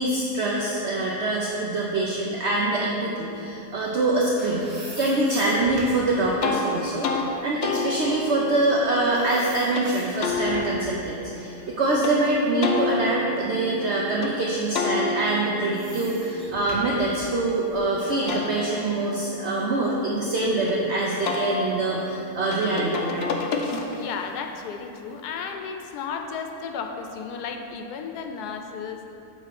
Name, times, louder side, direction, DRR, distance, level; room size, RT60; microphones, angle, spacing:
voice 1, 0.0-4.7 5.0-23.3, right 2 dB, 55° right, -3 dB, 0.8 m, -25 dB
sound 1, 4.2-8.8 9.2-10.9 11.3-13.3 13.8-13.9 14.9-18.0, equal, 15° right, 1.2 m, -43 dB
sound 2, 6.4-6.6 7.0-7.2 7.6-9.9 10.2-12.1 12.6-14.3 14.7-17.6 18.0-20.7 21.2-24.2, left 3 dB, 65° left, 0.6 m, -31 dB
voice 2, 24.0-29.1, left 6 dB, 85° left, 4 dB, 1.1 m, -34 dB
9.0 x 3.1 x 5.8 m, 2.8 s
omnidirectional pair, 1.7 m